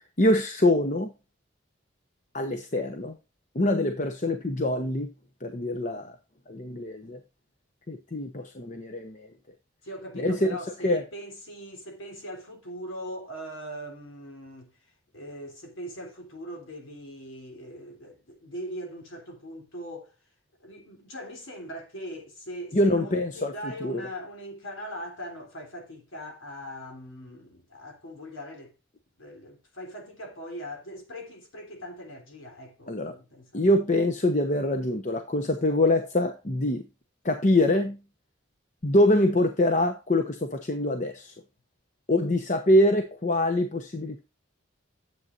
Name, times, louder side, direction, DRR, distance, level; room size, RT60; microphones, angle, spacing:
voice 1, 0.2-1.1 2.3-3.1 3.5-5.1 5.4-6.1 6.5-7.2 7.9-9.3 10.2-10.6 10.8-11.0 22.7-23.5 23.8-24.0 32.9-33.1 33.5-36.8 37.2-38.0 38.8-41.3 42.1-44.2, left 1 dB, 40° left, 0.9 m, -24 dB
voice 2, 9.8-20.1 20.6-28.7 29.2-33.7, equal, 85° left, 3.4 m, -41 dB
10.5 x 7.9 x 2.6 m
head